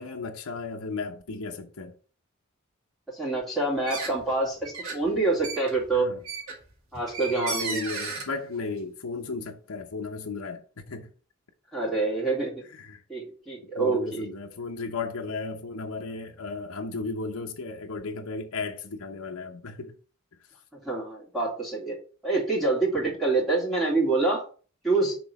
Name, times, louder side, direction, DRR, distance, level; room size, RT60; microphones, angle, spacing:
voice 1, 0.0-1.9 5.9-6.2 7.4-11.1 12.7-13.0 13.8-19.9 23.0-23.1, left 3 dB, 80° left, 0.9 m, -35 dB
voice 2, 3.1-6.1 6.9-7.8 11.7-12.6 13.1-14.3 20.8-22.0 22.2-24.4 24.8-25.1, right 3 dB, ahead, 2.7 m, -26 dB
sound 1, 3.8-4.3 4.6-8.3, right 4 dB, 80° right, 2.2 m, -35 dB
6.1 x 3.8 x 6.0 m
head